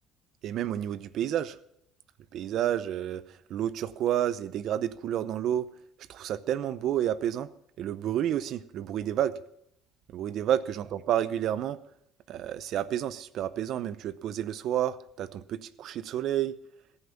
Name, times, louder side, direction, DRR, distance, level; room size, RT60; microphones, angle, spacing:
voice 1, 0.4-1.6 2.3-5.7 6.1-7.5 7.8-9.3 10.1-11.8 12.3-16.5, right 11 dB, 60° right, 16 dB, 0.7 m, -30 dB
15.0 x 9.8 x 5.8 m, 0.73 s
cardioid pair, 115°, 0 cm